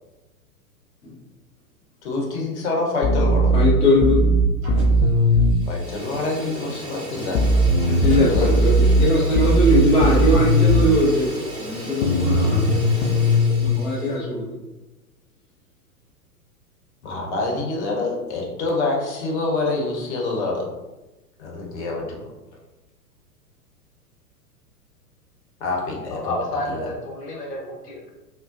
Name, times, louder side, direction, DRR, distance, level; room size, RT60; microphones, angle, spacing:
voice 1, 2.0-3.5 5.7-7.4 8.3-8.5 17.0-20.7 21.4-22.2 25.6-26.3 26.7-26.9, left 3 dB, 45° left, -2 dB, 1.0 m, -26 dB
sound 1, 3.0-5.6 7.3-11.0 12.0-13.7, equal, 65° left, 0.6 m, -18 dB
voice 2, 3.5-4.2 7.9-12.6 13.6-14.4, left 1 dB, 10° left, -7 dB, 0.5 m, -20 dB
Fire, 4.6-5.1 5.4-14.2, right 1 dB, 25° right, 1.0 m, -35 dB
voice 3, 26.1-28.1, left 1 dB, 80° left, -2 dB, 0.9 m, -30 dB
3.6 x 2.2 x 2.5 m, 1.1 s
figure-of-eight pair, 100°, 47 cm